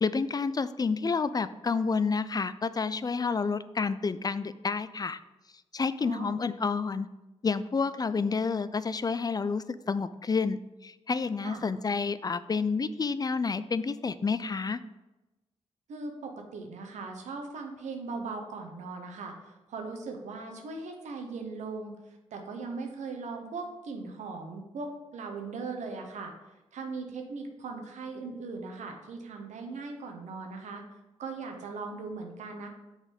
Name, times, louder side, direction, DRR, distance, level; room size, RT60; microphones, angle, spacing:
voice 1, 0.0-5.2 5.7-7.1 7.4-14.8, left 4 dB, 35° left, 14 dB, 0.3 m, -29 dB
voice 2, 6.0-6.4 11.4-11.6 15.9-26.3 26.7-30.8 31.2-32.7, right 4 dB, 90° right, 4 dB, 0.9 m, -39 dB
6.1 x 4.1 x 5.1 m, 1.1 s
cardioid pair, 55°, 12 cm